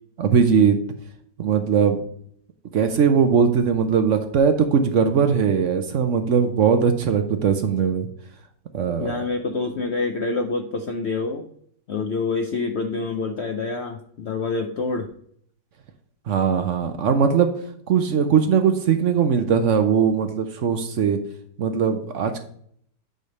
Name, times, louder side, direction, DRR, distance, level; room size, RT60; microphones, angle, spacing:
voice 1, 0.2-0.8 1.4-2.0 2.7-8.1 8.7-9.2 16.3-17.5 17.9-21.2 21.6-22.4, right 6 dB, 60° right, 7 dB, 0.8 m, -20 dB
voice 2, 9.0-11.5 11.9-15.1, left 3 dB, 85° left, 5 dB, 0.5 m, -26 dB
8.6 x 3.3 x 5.2 m, 0.64 s
omnidirectional pair, 1.9 m